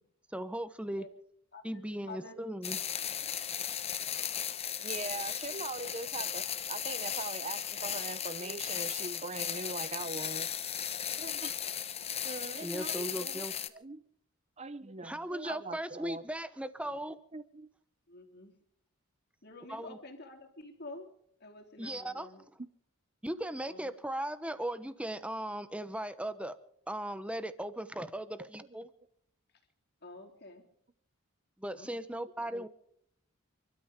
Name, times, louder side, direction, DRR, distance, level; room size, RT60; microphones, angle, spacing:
voice 1, 0.3-1.0 1.6-2.8 12.6-13.5 15.0-17.2 19.7-20.0 21.8-22.3 23.2-26.6 26.9-28.9 31.6-32.7, right 1 dB, 5° right, 1.0 m, -37 dB
voice 2, 1.5-2.3 18.1-18.5 19.4-21.1 21.4-22.4 23.6-23.9 30.0-30.6 31.7-32.0, left 2 dB, 50° left, 3.4 m, -49 dB
sound 1, 2.6-13.7, left 9 dB, 30° left, 0.9 m, -36 dB
voice 3, 4.8-10.5 11.2-11.6 12.2-13.4 13.7-14.0 14.6-16.2 17.3-17.7 28.4-28.5 32.5-32.7, right 3 dB, 30° right, 0.8 m, -41 dB
29.5 x 12.5 x 3.7 m
head